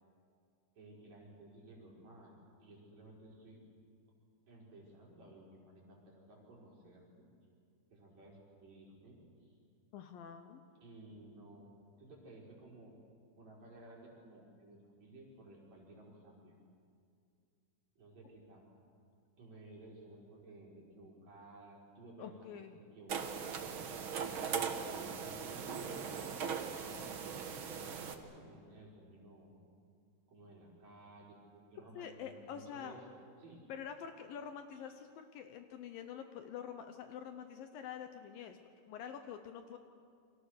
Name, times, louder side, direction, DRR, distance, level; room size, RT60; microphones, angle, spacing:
voice 1, 0.8-2.3 2.6-3.6 4.5-7.2 7.9-9.6 10.8-11.7 12.0-12.9 13.4-16.6 18.0-18.7 19.4-22.6 22.9-23.7 24.5-27.2 27.8-29.5 30.3-33.0 33.4-33.6 34.7-34.8, right 2 dB, 45° right, -4 dB, 6.3 m, -56 dB
voice 2, 9.9-10.6 22.2-22.8 32.0-33.0 33.7-39.8, left 8 dB, 70° left, 7 dB, 2.5 m, -47 dB
sound 1, 23.1-28.2, right 6 dB, 85° right, 1.1 m, -39 dB
29.0 x 24.5 x 6.6 m, 2.3 s
omnidirectional pair, 4.6 m